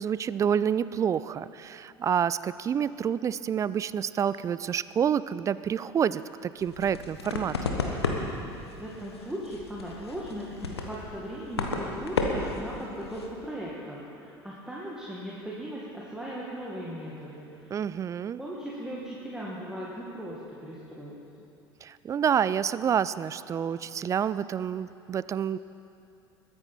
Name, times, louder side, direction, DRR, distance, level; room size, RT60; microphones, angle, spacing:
voice 1, 0.0-7.6 17.7-18.4 21.8-25.6, right 8 dB, 25° right, 17 dB, 0.4 m, -28 dB
sound 1, 6.6-13.3, left 3 dB, 75° left, 1.4 m, -33 dB
voice 2, 8.8-17.7 18.4-21.2, equal, 5° right, -6 dB, 2.1 m, -38 dB
22.0 x 9.9 x 4.4 m, 2.8 s
figure-of-eight pair, 70°, 13 cm